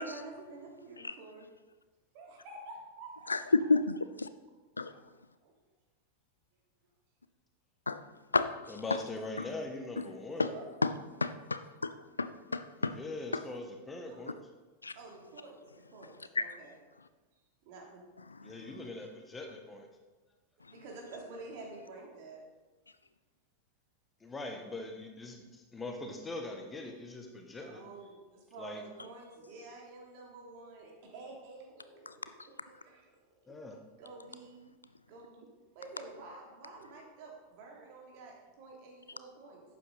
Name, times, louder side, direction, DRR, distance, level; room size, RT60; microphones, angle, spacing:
voice 1, 0.0-1.5 2.1-3.3 4.9-5.0 5.4-5.5 10.3-10.7 14.1-14.3 14.9-16.8 17.3-18.0 20.7-22.4 27.5-32.5 32.8-33.2 33.4-33.5 34.0-34.7 35.1-35.5 35.7-39.6, right 3 dB, 45° right, -1 dB, 3.0 m, -49 dB
voice 2, 3.3-4.3 4.8-4.9 7.9-8.0 8.3-8.6 8.9-9.0 10.4-10.5 10.8-10.9 11.2-13.0 13.3-13.4 14.8-14.9 16.4-16.5 18.5-18.6 32.1-32.2, left 3 dB, 80° left, 12 dB, 0.4 m, -30 dB
voice 3, 8.7-10.4 12.8-14.4 18.4-19.9 24.2-27.8 28.6-28.8 33.5-33.8, left 2 dB, 15° left, 3 dB, 1.4 m, -42 dB
11.5 x 8.6 x 4.0 m, 1.2 s
figure-of-eight pair, 90°, 0 cm